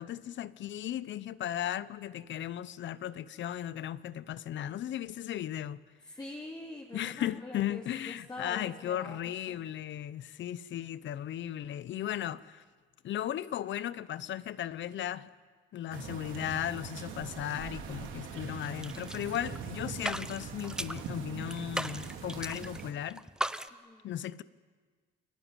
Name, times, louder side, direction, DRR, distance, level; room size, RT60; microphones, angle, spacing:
voice 1, 0.0-5.8 6.9-12.6 13.0-15.3 15.7-23.2 24.0-24.4, left 11 dB, 70° left, 0.9 m, -36 dB
voice 2, 6.1-9.2 9.5-9.7 23.7-24.1, left 1 dB, 20° left, 3.3 m, -45 dB
sound 1, 15.9-22.9, right 7 dB, 90° right, 2.9 m, -42 dB
sound 2, 18.6-19.6 19.9-21.1 21.5-22.8 23.1-23.7, right 1 dB, 5° right, 1.0 m, -37 dB
29.5 x 21.0 x 9.1 m
cardioid pair, 90°, 20 cm